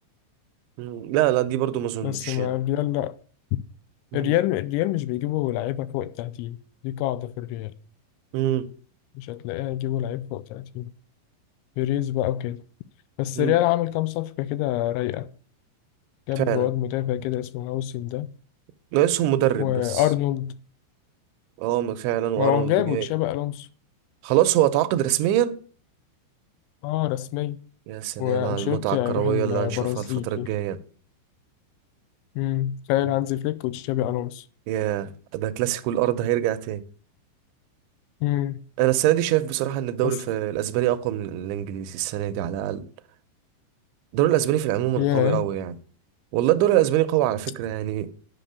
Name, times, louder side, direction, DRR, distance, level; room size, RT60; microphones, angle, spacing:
voice 1, 0.8-2.5 4.1-4.3 8.3-8.7 13.4-13.6 16.4-16.7 18.9-20.0 21.6-23.1 24.2-25.6 27.9-30.8 34.7-36.8 38.8-42.9 44.1-45.8 46.3-48.1, right 13 dB, 80° right, 2.8 m, -24 dB
voice 2, 2.0-3.1 3.5-3.6 4.1-6.6 6.8-7.7 9.2-10.9 11.8-12.6 13.2-15.3 16.3-18.3 19.6-20.5 22.4-23.7 26.8-27.6 28.2-30.5 32.4-34.5 38.2-38.6 40.0-40.1 45.0-45.4, left 14 dB, 85° left, 2.7 m, -26 dB
10.0 x 6.0 x 6.7 m
omnidirectional pair, 5.6 m